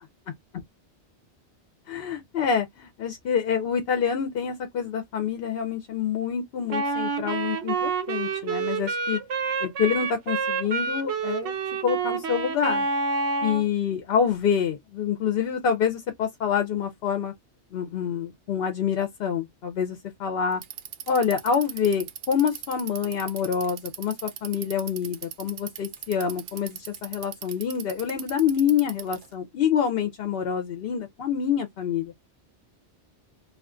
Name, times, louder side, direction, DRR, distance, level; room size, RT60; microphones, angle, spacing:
voice 1, 1.9-9.2 9.6-11.5 11.8-12.9 13.4-17.3 17.7-20.6 21.1-32.1, left 7 dB, 65° left, 0.7 m, -27 dB
Wind instrument woodwind instrument, 6.7-13.7, right 4 dB, 90° right, 1.0 m, -28 dB
Bicycle, 20.5-29.3, right 9 dB, 60° right, 0.6 m, -39 dB
2.4 x 2.3 x 3.6 m
omnidirectional pair, 1.1 m